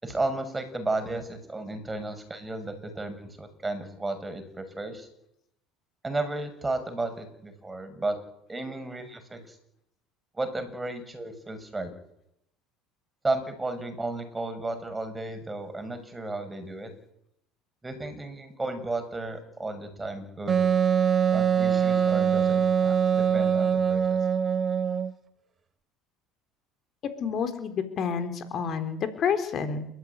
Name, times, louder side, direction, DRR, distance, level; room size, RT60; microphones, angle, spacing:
voice 1, 0.0-5.1 6.0-8.2 8.5-9.6 10.4-11.9 13.2-16.9 17.8-20.6 21.3-24.2, right 2 dB, 15° right, 8 dB, 6.8 m, -33 dB
Wind instrument woodwind instrument, 20.5-25.1, right 7 dB, 30° right, 3.0 m, -23 dB
voice 2, 27.2-29.9, left 6 dB, 45° left, 8 dB, 3.8 m, -29 dB
29.0 x 13.5 x 9.9 m, 0.77 s
supercardioid pair, 90°, 0 cm